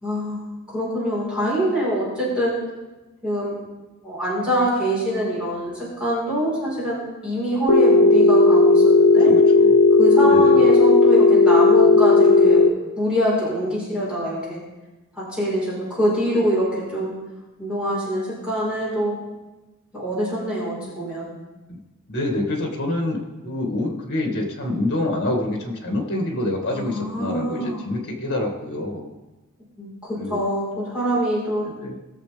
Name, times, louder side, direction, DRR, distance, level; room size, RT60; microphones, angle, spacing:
voice 1, 0.0-2.5 3.2-3.6 4.0-9.3 10.0-12.7 13.0-14.6 15.1-17.1 17.6-19.2 19.9-21.3 26.7-27.8 29.8-31.7, equal, 5° right, -8 dB, 4.6 m, -24 dB
Telephone, 7.7-12.7, left 3 dB, 80° left, 0.7 m, -14 dB
voice 2, 9.2-9.8 10.3-10.6 21.7-21.8 22.1-29.1 30.2-30.4 31.6-32.0, left 1 dB, 50° left, 1 dB, 2.2 m, -26 dB
20.5 x 7.0 x 3.5 m, 1.1 s
head